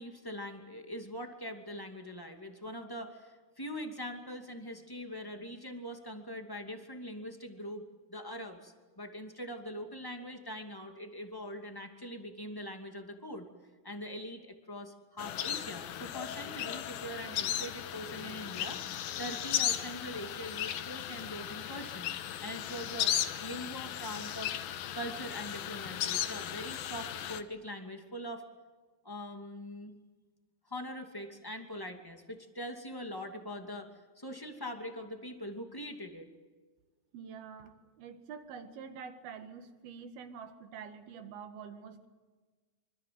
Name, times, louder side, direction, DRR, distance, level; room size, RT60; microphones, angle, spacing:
voice 1, 0.0-13.5 13.8-22.1 22.4-24.5 24.9-28.4 29.0-29.9 30.7-36.3, equal, 10° left, 5 dB, 1.5 m, -42 dB
sound 1, 15.2-27.4, left 11 dB, 75° left, 2.9 m, -36 dB
voice 2, 37.1-42.1, right 6 dB, 75° right, 8 dB, 3.8 m, -46 dB
26.0 x 25.5 x 7.8 m, 1.4 s
omnidirectional pair, 4.4 m